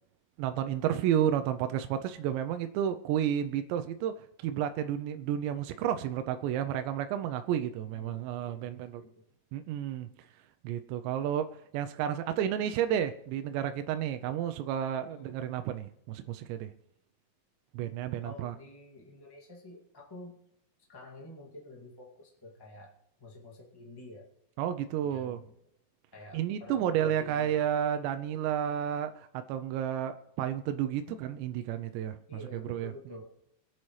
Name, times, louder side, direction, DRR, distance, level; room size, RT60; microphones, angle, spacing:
voice 1, 0.4-4.1 4.4-9.0 9.5-10.1 10.6-11.5 11.7-16.7 17.7-18.6 24.6-25.4 26.3-29.1 29.5-32.9, right 10 dB, 90° right, 8 dB, 2.9 m, -31 dB
voice 2, 7.9-9.2 15.1-15.3 18.2-20.4 20.9-24.3 25.0-25.5 26.1-27.8 31.0-31.5 32.3-33.3, left 2 dB, 30° left, -3 dB, 0.4 m, -49 dB
24.0 x 10.0 x 3.2 m, 0.76 s
omnidirectional pair, 5.0 m